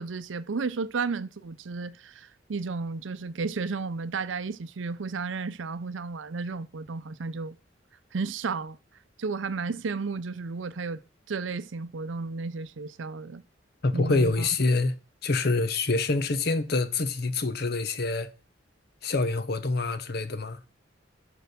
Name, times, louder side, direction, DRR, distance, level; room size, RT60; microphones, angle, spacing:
voice 1, 0.0-7.6 8.1-8.8 9.2-11.0 11.3-13.4 13.9-14.5, right 4 dB, 75° right, 0.6 m, -33 dB
voice 2, 13.8-14.9 15.2-18.3 19.0-20.6, left 3 dB, 55° left, 0.8 m, -26 dB
6.7 x 4.6 x 6.7 m
head